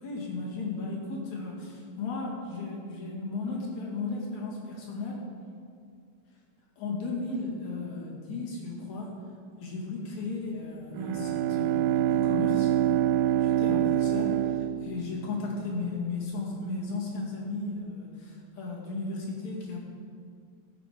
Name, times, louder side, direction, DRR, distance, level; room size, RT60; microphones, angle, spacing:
voice 1, 0.0-5.3 6.8-9.1 9.6-12.7 13.4-19.8, left 3 dB, 75° left, -3 dB, 3.4 m, -35 dB
Bowed string instrument, 10.9-15.5, right 12 dB, 80° right, 1.6 m, -26 dB
14.5 x 7.6 x 5.0 m, 2.3 s
omnidirectional pair, 3.4 m